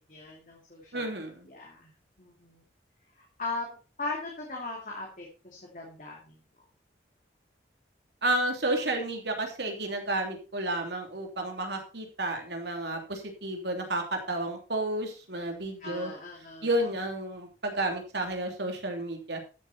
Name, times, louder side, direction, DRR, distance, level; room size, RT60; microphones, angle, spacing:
voice 1, 0.1-1.0 1.5-1.9 2.2-2.7 3.4-3.7 4.0-6.4 15.8-16.7, left 3 dB, 45° left, -1 dB, 2.5 m, -38 dB
voice 2, 0.9-1.5 8.2-16.1 16.6-19.4, right 1 dB, 65° right, 4 dB, 3.1 m, -31 dB
13.0 x 8.0 x 4.3 m, 0.34 s
head